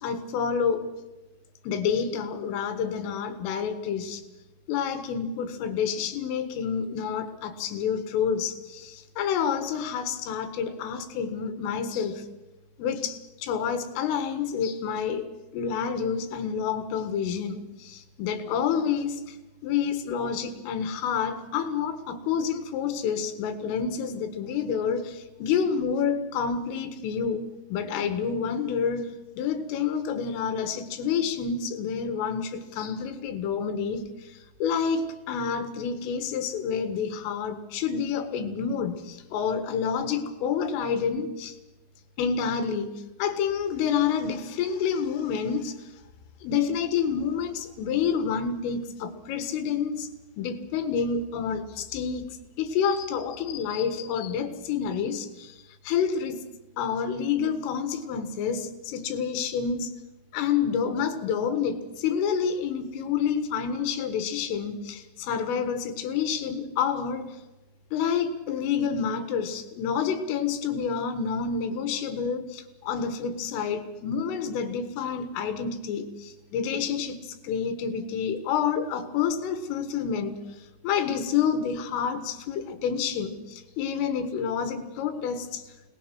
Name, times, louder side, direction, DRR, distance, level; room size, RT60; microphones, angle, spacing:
voice 1, 0.0-0.9 1.7-4.2 4.7-12.3 12.8-19.4 19.6-34.3 34.6-41.6 42.2-45.8 46.4-50.1 50.4-55.6 55.8-56.4 56.8-60.0 60.3-67.4 67.9-80.4 80.8-85.6, left 7 dB, 85° left, 9 dB, 4.3 m, -28 dB
28.0 x 19.5 x 6.1 m, 1.0 s
omnidirectional pair, 5.7 m